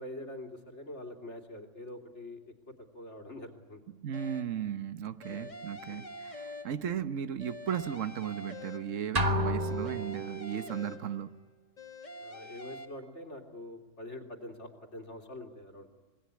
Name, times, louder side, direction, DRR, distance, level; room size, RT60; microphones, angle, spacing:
voice 1, 0.0-3.8 5.3-5.5 5.9-6.1 10.5-10.7 12.2-15.9, left 1 dB, 65° left, 3.4 m, -45 dB
voice 2, 3.9-11.3, right 9 dB, 90° right, 1.4 m, -36 dB
sound 1, 4.1-4.7 5.2-7.1 7.4-9.2 9.6-11.4 11.8-12.8, left 1 dB, 35° left, 1.9 m, -46 dB
sound 2, 9.2-10.6, equal, 30° right, 1.3 m, -30 dB
26.5 x 20.5 x 9.7 m
omnidirectional pair, 1.3 m